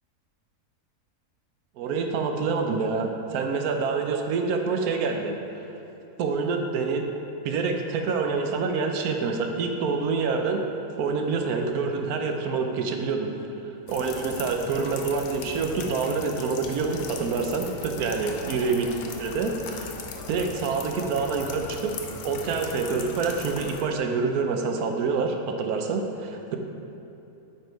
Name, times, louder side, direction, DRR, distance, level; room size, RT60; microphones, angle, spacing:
voice 1, 1.8-5.3 6.2-7.0 7.4-10.6 11.0-13.3 13.9-18.9 19.2-19.9 20.3-22.0 22.2-26.6, right 4 dB, 85° right, 4 dB, 1.2 m, -27 dB
sound 1, 13.9-23.8, left 4 dB, 90° left, 1.2 m, -39 dB
8.1 x 4.5 x 4.6 m, 2.9 s
omnidirectional pair, 1.5 m